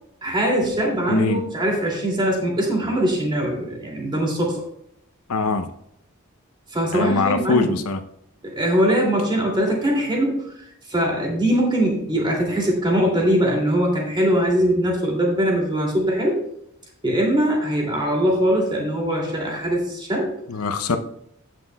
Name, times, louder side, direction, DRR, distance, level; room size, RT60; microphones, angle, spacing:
voice 1, 0.2-4.6 6.7-7.7 8.4-10.5 10.9-16.4 17.0-20.3 20.9-21.0, right 1 dB, 20° right, 2.6 m, -21 dB
voice 2, 1.1-1.4 5.3-5.7 6.9-8.0 20.5-21.0, left 4 dB, 90° left, 0.7 m, -22 dB
16.5 x 6.1 x 2.3 m
head